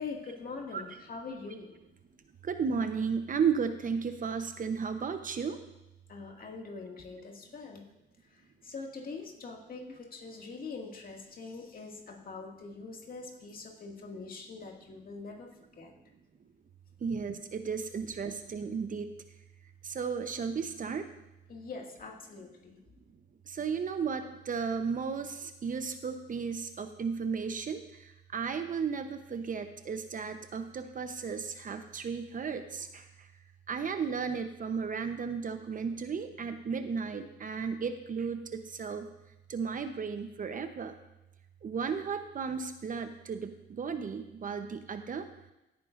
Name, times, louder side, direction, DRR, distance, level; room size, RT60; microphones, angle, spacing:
voice 1, 0.0-1.7 6.1-7.9 8.3-15.5 15.8-15.9 17.1-17.2 21.5-22.8, left 4 dB, 45° left, 0 dB, 2.1 m, -43 dB
voice 2, 2.4-5.6 17.0-19.1 19.8-21.1 23.5-33.0 33.7-39.1 39.5-40.9 41.6-45.3, right 6 dB, 45° right, 8 dB, 0.8 m, -34 dB
16.5 x 9.2 x 2.6 m, 0.95 s
cardioid pair, 90°, 20 cm